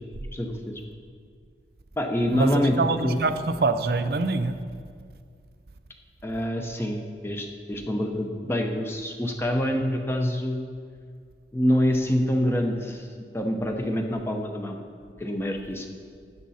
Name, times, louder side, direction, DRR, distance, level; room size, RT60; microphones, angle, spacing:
voice 1, 0.3-0.8 2.0-2.8 3.0-3.2 6.2-10.6 11.5-13.1 13.3-14.8 15.2-15.9, equal, 15° left, 3 dB, 0.8 m, -26 dB
voice 2, 2.3-4.6, right 3 dB, 60° right, 10 dB, 0.6 m, -25 dB
12.0 x 9.5 x 4.2 m, 2.1 s
head